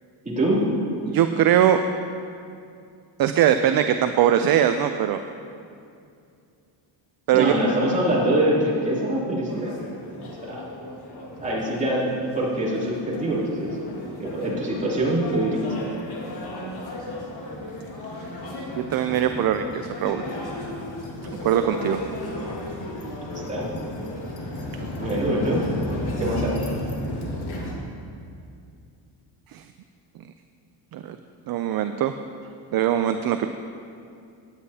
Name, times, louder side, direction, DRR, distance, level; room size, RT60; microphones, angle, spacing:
voice 1, 0.2-0.6 7.3-9.8 10.4-10.6 11.4-13.8 14.2-15.6 23.5-23.7 25.0-25.6 26.2-26.5, right 1 dB, 15° right, -7 dB, 2.8 m, -24 dB
voice 2, 1.1-1.8 3.2-5.2 7.3-7.5 18.8-20.2 21.4-22.0 29.5-29.6 30.9-31.2 31.5-32.1 32.7-33.5, right 10 dB, 55° right, 8 dB, 0.5 m, -21 dB
sound 1, 9.5-27.7, left 1 dB, 55° left, 2.1 m, -34 dB
16.5 x 9.6 x 2.8 m, 2.5 s
cardioid pair, 140°, 45 cm